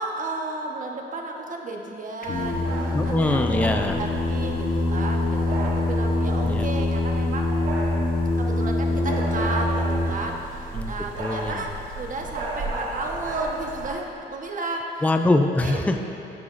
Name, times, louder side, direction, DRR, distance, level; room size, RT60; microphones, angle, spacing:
voice 1, 0.0-3.4 4.0-7.5 8.3-15.0 15.6-16.0, right 2 dB, 40° right, 1 dB, 1.1 m, -33 dB
Singing, 2.2-10.1, left 2 dB, 45° left, 0.9 m, -24 dB
sound 1, 2.3-13.9, right 1 dB, 75° right, 1.9 m, -34 dB
voice 2, 2.9-4.0 6.4-6.6 10.7-10.9 11.2-11.6 15.0-16.0, left 2 dB, 5° left, 6 dB, 0.4 m, -23 dB
15.0 x 5.9 x 2.5 m, 2.8 s
cardioid pair, 90°, 20 cm